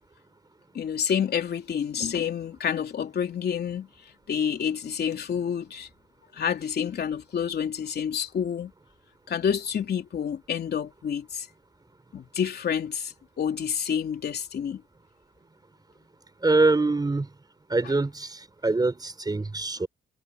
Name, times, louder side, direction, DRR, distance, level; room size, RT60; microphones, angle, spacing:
voice 1, 0.7-3.9 4.3-5.9 6.3-8.7 9.3-11.5 12.1-14.8 17.8-17.9, left 8 dB, 55° left, 3.5 m, -28 dB
voice 2, 16.4-17.3 17.7-19.9, right 3 dB, 20° right, 4.1 m, -24 dB
cardioid pair, 90°, 20 cm